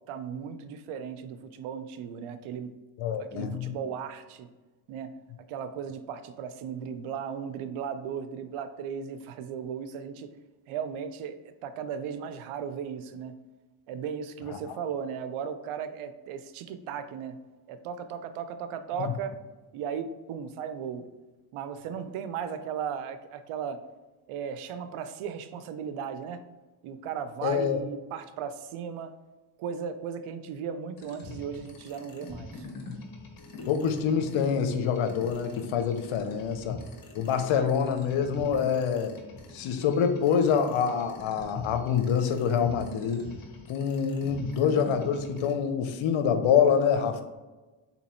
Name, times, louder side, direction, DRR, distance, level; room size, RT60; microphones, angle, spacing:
voice 1, 0.1-2.7 3.2-4.5 4.9-5.1 5.5-10.3 10.7-13.4 13.9-17.4 17.7-19.4 19.7-21.0 21.5-23.8 24.3-26.4 26.8-29.1 29.6-32.6, right 7 dB, 80° right, 10 dB, 0.6 m, -36 dB
voice 2, 3.0-3.7 14.5-14.7 19.0-19.1 27.4-27.8 33.6-36.8 37.1-39.1 39.5-43.3 43.7-47.2, left 7 dB, 70° left, 7 dB, 0.7 m, -26 dB
sound 1, 31.0-45.5, left 3 dB, 45° left, 1.1 m, -43 dB
3.9 x 2.9 x 4.3 m, 1.2 s
cardioid pair, 75°, 50 cm